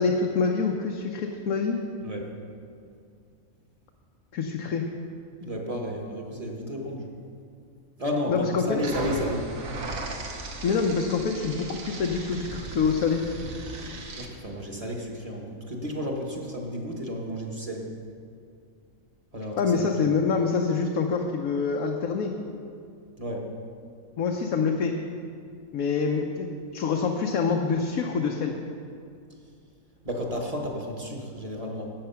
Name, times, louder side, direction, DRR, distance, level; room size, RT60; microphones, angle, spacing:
voice 1, 0.0-1.8 4.3-4.8 8.3-8.6 10.6-13.2 19.6-22.3 24.2-24.9 25.7-28.5, left 5 dB, 85° left, 2 dB, 1.2 m, -26 dB
voice 2, 5.4-7.1 8.0-9.5 14.2-17.9 19.3-19.9 23.2-23.5 30.0-31.9, equal, 25° right, 0 dB, 1.4 m, -32 dB
sound 1, 8.8-14.3, right 2 dB, 75° right, 1.6 m, -37 dB
12.5 x 8.7 x 5.7 m, 2.3 s
omnidirectional pair, 1.4 m